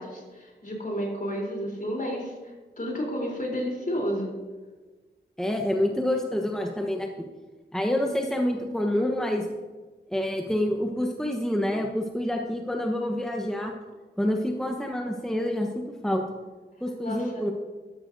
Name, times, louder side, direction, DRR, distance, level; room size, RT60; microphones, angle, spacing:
voice 1, 0.0-4.3 17.0-17.4, equal, 45° left, -1 dB, 3.6 m, -31 dB
voice 2, 5.4-7.3 7.7-9.5 10.1-13.7 14.2-16.2 16.8-17.5, left 1 dB, 5° left, 1 dB, 1.0 m, -27 dB
12.5 x 12.5 x 2.7 m, 1.3 s
cardioid pair, 60°, 19 cm